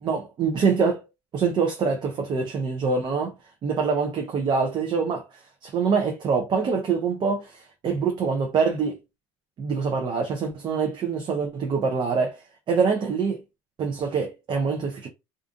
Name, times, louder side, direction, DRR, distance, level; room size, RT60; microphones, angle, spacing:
voice 1, 0.0-1.0 1.3-3.3 3.6-9.0 9.6-12.4 12.7-13.4 13.8-15.1, right 5 dB, 40° right, 0.6 m, -25 dB
2.5 x 2.4 x 2.4 m
supercardioid pair, 105°, 12 cm